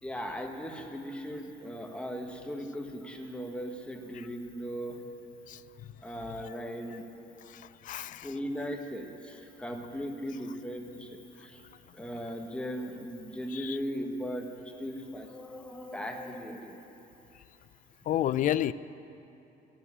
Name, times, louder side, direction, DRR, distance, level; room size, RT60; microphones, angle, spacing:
voice 1, 0.0-5.0 6.0-7.1 8.2-11.6 11.9-14.5 14.8-16.7, equal, 5° left, 2 dB, 1.4 m, -38 dB
voice 2, 7.5-8.3 13.5-13.8 18.1-18.7, left 12 dB, 50° left, 17 dB, 0.4 m, -30 dB
14.0 x 7.3 x 9.9 m, 2.8 s
cardioid pair, 110°, 17 cm